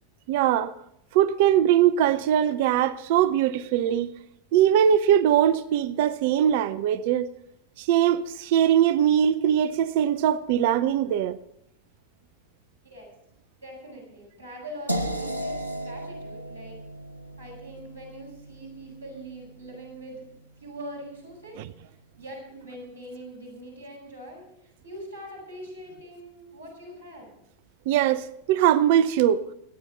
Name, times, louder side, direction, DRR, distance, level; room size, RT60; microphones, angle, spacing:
voice 1, 0.3-0.7 1.1-4.1 4.5-7.3 7.8-11.4 27.9-29.4, right 10 dB, 50° right, 0.6 m, -21 dB
voice 2, 13.6-16.8 17.4-20.3 20.6-27.4, right 1 dB, 90° left, 6.7 m, -43 dB
sound 1, 14.9-20.8, right 1 dB, 80° right, 1.1 m, -36 dB
23.0 x 9.9 x 3.9 m
figure-of-eight pair, 90°, 0 cm